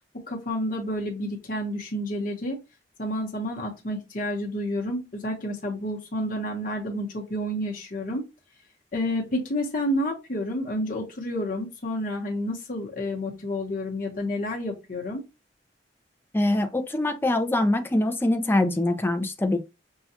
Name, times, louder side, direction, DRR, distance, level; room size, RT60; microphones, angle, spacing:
voice 1, 0.1-2.6 3.0-8.2 8.9-15.2, equal, 50° left, 0.9 m, -30 dB
voice 2, 16.3-19.6, left 1 dB, 10° left, 0.4 m, -23 dB
5.5 x 2.3 x 2.8 m
head